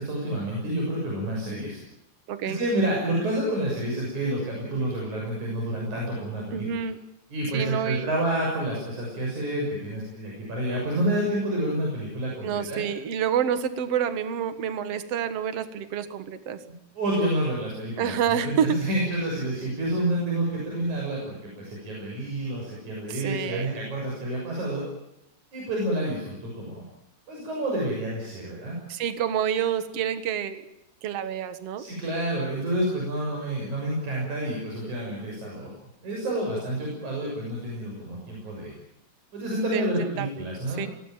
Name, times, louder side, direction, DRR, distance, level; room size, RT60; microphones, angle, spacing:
voice 1, 0.0-1.8 2.4-6.8 7.3-12.8 16.9-24.8 25.5-26.8 27.3-28.8 31.8-35.7 36.0-38.7 39.3-40.8, right 1 dB, 80° right, -2 dB, 8.0 m, -29 dB
voice 2, 2.3-2.6 6.5-7.0 7.5-8.1 12.4-16.6 18.0-18.8 23.1-23.7 28.9-30.6 31.0-31.9 39.6-40.4 40.8-40.9, right 8 dB, 60° right, 11 dB, 2.5 m, -28 dB
23.0 x 19.0 x 9.2 m, 0.84 s
omnidirectional pair, 3.3 m